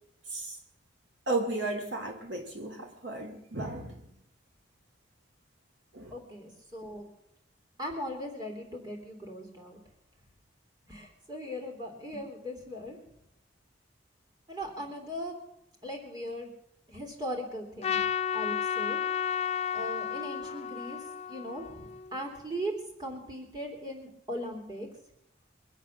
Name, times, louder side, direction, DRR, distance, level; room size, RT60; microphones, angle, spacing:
voice 1, 1.3-4.0 5.9-6.1, right 2 dB, 75° right, 3 dB, 2.5 m, -34 dB
voice 2, 6.1-7.1 7.8-9.8 10.9-13.0 14.5-15.3 15.8-16.5 16.9-18.0 18.3-19.0 19.7-21.0 21.3-22.7 23.0-24.9, equal, 20° right, 1 dB, 3.4 m, -39 dB
Trumpet, 17.8-22.2, left 8 dB, 35° left, 0.5 m, -32 dB
23.5 x 8.1 x 7.4 m, 0.81 s
head